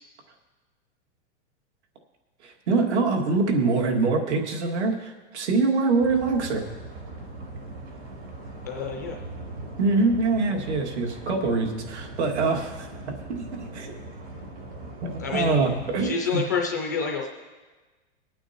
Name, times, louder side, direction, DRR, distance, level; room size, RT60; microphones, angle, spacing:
voice 1, 2.4-6.6 9.8-14.0 15.0-16.4, right 3 dB, 75° right, 2 dB, 2.2 m, -24 dB
sound 1, 6.0-16.1, right 2 dB, 50° right, 4.6 m, -40 dB
voice 2, 8.7-9.2 15.2-15.5 16.0-17.3, left 5 dB, 15° left, 0 dB, 0.3 m, -28 dB
21.5 x 8.9 x 2.9 m, 1.3 s
supercardioid pair, 175°, 34 cm